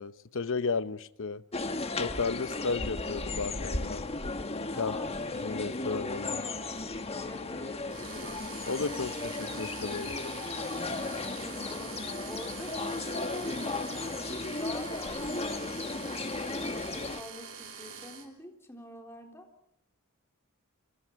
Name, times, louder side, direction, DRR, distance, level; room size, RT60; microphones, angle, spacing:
voice 1, 0.0-1.4 2.0-4.0 4.8-5.0 5.3-6.4 8.7-10.2, left 4 dB, 60° left, 0.8 m, -33 dB
sound 1, 1.5-17.2, left 3 dB, 30° left, 1.3 m, -35 dB
voice 2, 4.7-5.6 6.3-7.9 8.8-9.3 11.2-16.3 16.9-19.5, left 1 dB, 10° left, 3.7 m, -48 dB
sound 2, 7.9-18.3, right 7 dB, 60° right, 3.4 m, -45 dB
29.0 x 25.0 x 4.7 m
head